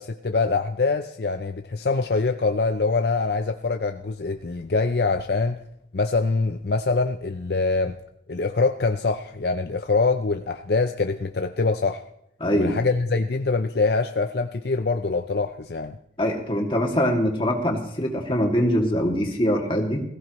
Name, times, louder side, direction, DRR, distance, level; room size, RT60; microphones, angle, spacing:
voice 1, 0.0-5.6 5.9-8.0 8.3-12.0 12.5-16.0, left 3 dB, 55° left, 7 dB, 0.6 m, -24 dB
voice 2, 12.4-12.7 16.2-20.0, equal, 25° left, 0 dB, 2.4 m, -23 dB
21.0 x 15.0 x 3.1 m, 0.78 s
head